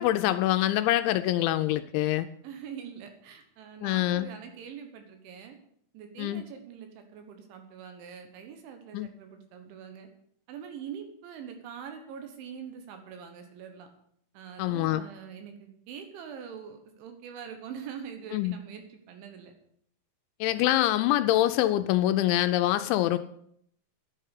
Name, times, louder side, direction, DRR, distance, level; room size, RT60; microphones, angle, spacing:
voice 1, 0.0-2.3 3.8-4.3 6.2-6.4 8.9-9.1 14.6-15.0 18.3-18.6 20.4-23.2, left 14 dB, 85° left, 10 dB, 2.8 m, -25 dB
voice 2, 2.4-5.6 5.9-10.1 10.5-13.9 14.3-19.5, right 7 dB, 80° right, 6 dB, 3.6 m, -43 dB
10.5 x 7.8 x 8.2 m, 0.69 s
omnidirectional pair, 5.5 m